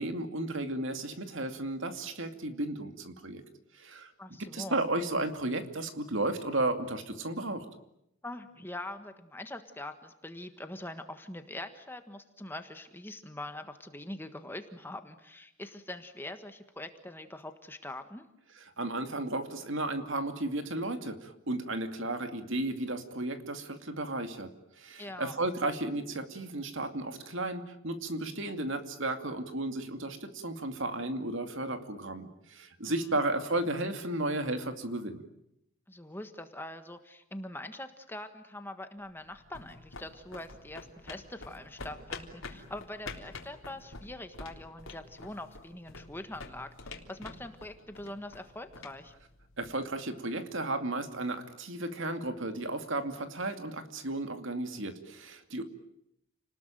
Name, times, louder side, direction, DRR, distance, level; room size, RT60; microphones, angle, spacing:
voice 1, 0.0-3.4 3.7-4.1 4.4-7.6 18.6-24.5 24.8-35.2 49.6-55.6, right 2 dB, 60° right, 7 dB, 2.5 m, -34 dB
voice 2, 4.2-4.8 8.2-18.3 25.0-25.3 32.8-33.2 35.9-49.1, left 1 dB, 10° left, 8 dB, 1.5 m, -43 dB
sound 1, 39.1-49.9, left 3 dB, 70° left, 3.5 m, -47 dB
30.0 x 20.0 x 9.2 m, 0.79 s
head